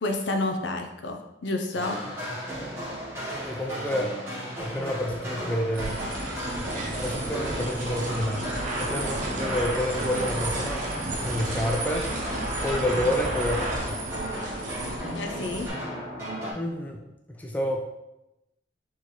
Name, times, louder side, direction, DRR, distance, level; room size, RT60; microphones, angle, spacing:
voice 1, 0.0-2.0 15.1-15.7, left 2 dB, 65° left, 4 dB, 0.5 m, -30 dB
sound 1, 1.7-16.5, equal, 15° right, 1.6 m, -36 dB
voice 2, 3.4-4.2 4.6-6.1 7.0-8.5 8.8-10.9 11.1-12.1 12.6-14.0 16.5-17.8, left 1 dB, 10° left, 1 dB, 0.3 m, -29 dB
sound 2, 5.7-15.7, right 1 dB, 40° right, 0.9 m, -32 dB
4.2 x 3.7 x 3.1 m, 0.93 s
head